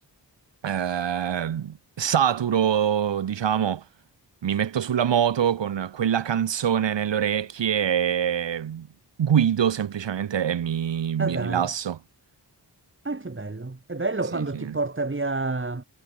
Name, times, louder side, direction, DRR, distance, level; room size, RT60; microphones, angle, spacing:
voice 1, 0.6-3.8 4.4-8.9 9.2-12.0 14.3-14.8, right 9 dB, 85° right, 1.1 m, -24 dB
voice 2, 11.2-11.7 13.0-15.8, right 3 dB, 30° right, 4.2 m, -29 dB
wide cardioid pair, 100°, 42 cm